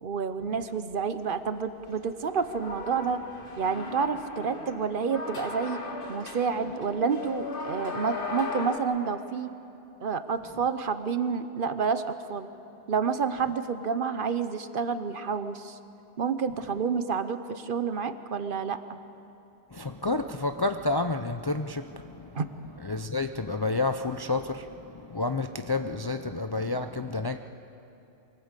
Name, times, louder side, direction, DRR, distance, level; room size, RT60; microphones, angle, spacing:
voice 1, 0.0-3.2 3.6-5.8 6.1-9.5 10.0-12.5 12.9-15.8 16.2-19.0 22.3-22.5, right 5 dB, 55° right, 11 dB, 1.0 m, -29 dB
sound 1, 2.3-8.8, left 3 dB, 50° left, 1.9 m, -37 dB
voice 2, 19.7-22.4 22.8-27.4, left 3 dB, 30° left, 7 dB, 0.4 m, -30 dB
23.5 x 18.0 x 8.2 m, 2.8 s
omnidirectional pair, 1.1 m